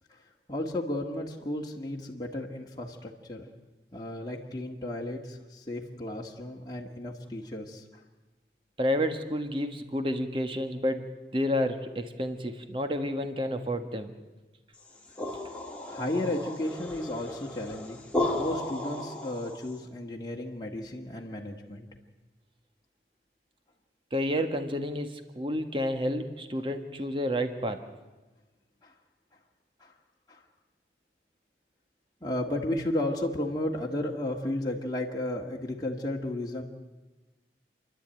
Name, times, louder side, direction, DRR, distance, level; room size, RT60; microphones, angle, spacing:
voice 1, 0.5-3.5 3.9-7.8 15.8-18.0 18.3-21.9 28.8-28.9 29.8-29.9 30.3-30.4 32.2-36.6, left 1 dB, 20° left, -1 dB, 1.8 m, -33 dB
voice 2, 8.8-14.1 24.1-27.8, equal, 30° right, 7 dB, 1.6 m, -30 dB
sound 1, 14.8-19.8, left 1 dB, 5° left, 2.8 m, -34 dB
29.5 x 11.5 x 9.0 m, 1.2 s
head